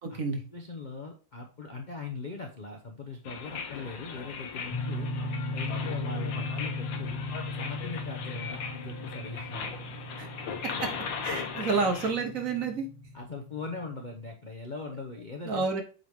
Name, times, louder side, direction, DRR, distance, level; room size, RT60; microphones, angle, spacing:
voice 1, 0.0-0.4 10.2-10.3 10.6-10.9 11.2-12.9 15.5-15.8, right 4 dB, 55° right, 5 dB, 1.2 m, -29 dB
voice 2, 0.5-5.1 5.5-7.2 7.6-9.7 13.1-15.8, left 3 dB, 45° left, 2 dB, 0.6 m, -40 dB
sound 1, 3.2-12.1, left 6 dB, 80° left, 1.6 m, -38 dB
sound 2, 4.7-14.3, left 2 dB, 20° left, 1.1 m, -37 dB
7.8 x 4.0 x 3.5 m, 0.37 s
omnidirectional pair, 2.0 m